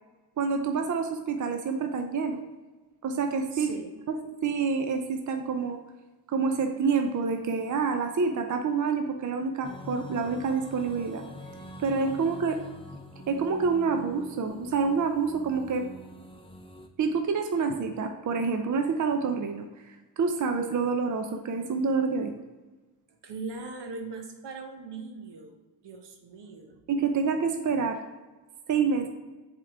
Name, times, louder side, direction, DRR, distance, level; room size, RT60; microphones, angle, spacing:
voice 1, 0.4-2.4 3.0-3.7 4.1-5.8 6.3-11.2 11.8-12.6 13.3-15.9 17.0-19.7 20.2-22.3 26.9-28.0 28.7-29.1, right 5 dB, 45° right, 5 dB, 0.6 m, -27 dB
voice 2, 3.5-3.9 23.2-26.8, right 4 dB, 80° right, 4 dB, 1.0 m, -40 dB
sound 1, 9.6-16.9, left 1 dB, 15° left, 0.6 m, -45 dB
7.5 x 3.7 x 3.5 m, 1.2 s
wide cardioid pair, 100°, 41 cm